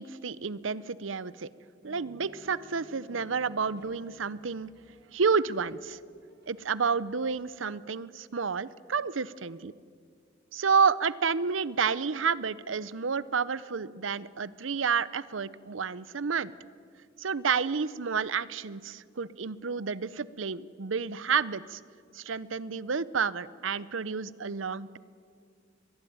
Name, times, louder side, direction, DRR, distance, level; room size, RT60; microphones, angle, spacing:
voice 1, 0.0-1.5 1.8-4.7 5.1-6.0 6.5-9.7 10.5-16.5 17.2-21.8 22.1-25.0, right 5 dB, 80° right, 18 dB, 0.7 m, -30 dB
sound 1, 1.8-7.5, left 1 dB, 60° right, 3.7 m, -54 dB
23.5 x 20.5 x 9.4 m, 2.1 s
head